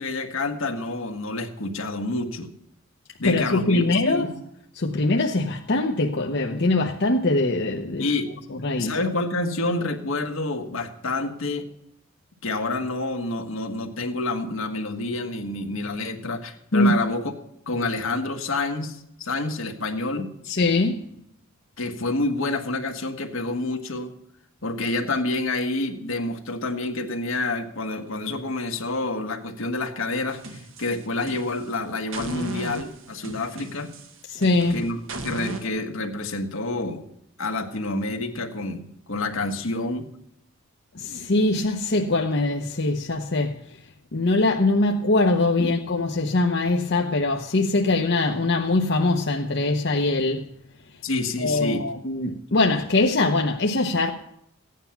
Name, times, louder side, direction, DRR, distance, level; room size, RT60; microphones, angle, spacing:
voice 1, 0.0-2.5 3.2-4.3 8.0-8.3 8.8-11.7 12.4-17.3 17.7-20.3 21.8-24.1 24.6-33.9 34.7-35.0 35.2-37.0 37.4-38.8 39.1-40.1 45.6-45.7 51.0-51.8, left 2 dB, 80° left, 1.5 m, -28 dB
voice 2, 3.2-4.3 4.8-8.1 8.5-9.0 16.7-16.9 20.5-21.0 34.3-34.8 40.9-43.6 44.1-50.5 51.4-54.1, left 2 dB, 55° left, 0.9 m, -22 dB
sound 1, 30.3-31.7 32.1-35.7, right 2 dB, 75° right, 1.4 m, -36 dB
15.0 x 9.4 x 5.8 m
head